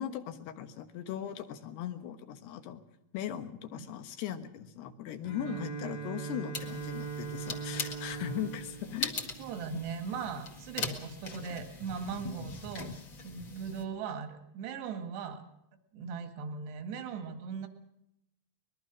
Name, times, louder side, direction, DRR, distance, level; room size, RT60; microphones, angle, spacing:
voice 1, 0.0-2.8 3.1-9.3 9.7-9.9, left 10 dB, 80° left, 8 dB, 3.4 m, -39 dB
Bowed string instrument, 5.2-10.0, right 6 dB, 60° left, 5.8 m, -41 dB
sound 1, 6.5-13.8, left 4 dB, 40° left, 1.9 m, -41 dB
voice 2, 9.4-12.9 13.2-15.4 15.9-17.7, right 6 dB, 80° right, 7 dB, 4.0 m, -39 dB
23.5 x 21.0 x 6.2 m, 0.80 s
omnidirectional pair, 4.7 m